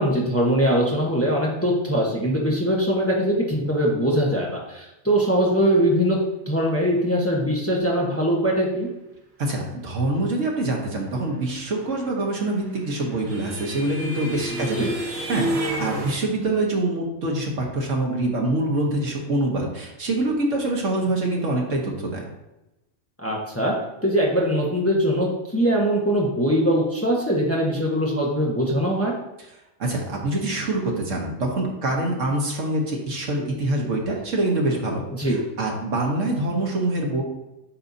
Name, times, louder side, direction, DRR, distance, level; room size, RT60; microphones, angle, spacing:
voice 1, 0.0-6.2 6.5-8.9 14.5-14.9 23.2-23.7 24.0-29.1 35.2-35.4, equal, 10° left, -3 dB, 1.1 m, -22 dB
voice 2, 9.4-14.9 15.3-22.2 29.8-37.2, right 2 dB, 70° right, 0 dB, 1.6 m, -25 dB
sound 1, 12.3-16.1, right 1 dB, 90° right, 1.6 m, -30 dB
8.8 x 5.5 x 2.7 m, 0.94 s
omnidirectional pair, 1.3 m